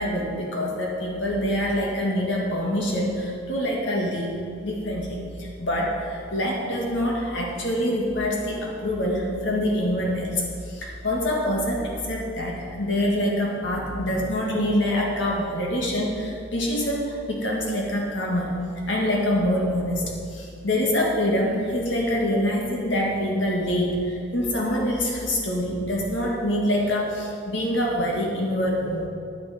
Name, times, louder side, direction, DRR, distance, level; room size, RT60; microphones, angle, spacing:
voice 1, 0.0-4.4 4.6-18.5 18.9-20.0 20.3-29.1, left 1 dB, 65° left, -2 dB, 1.8 m, -25 dB
10.0 x 9.6 x 5.0 m, 2.4 s
head